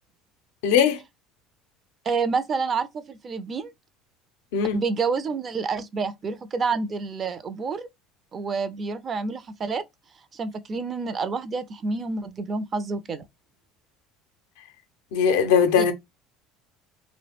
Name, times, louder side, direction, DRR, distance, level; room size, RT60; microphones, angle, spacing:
voice 1, 0.6-1.0 4.5-4.8 15.1-15.9, left 7 dB, 80° left, 0.4 m, -20 dB
voice 2, 2.1-3.7 4.7-7.9 8.3-9.8 10.3-13.2 15.8-15.9, right 4 dB, 40° right, 0.4 m, -28 dB
2.3 x 2.0 x 3.2 m
hypercardioid pair, 75°, 0 cm